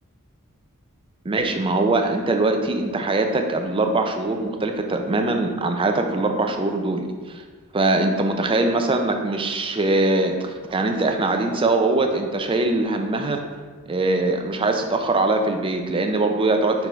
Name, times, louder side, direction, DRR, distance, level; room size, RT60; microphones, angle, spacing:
voice 1, 1.2-7.4 7.7-13.4 13.9-16.9, right 2 dB, 25° right, 4 dB, 0.5 m, -22 dB
4.7 x 4.4 x 5.2 m, 1.5 s
head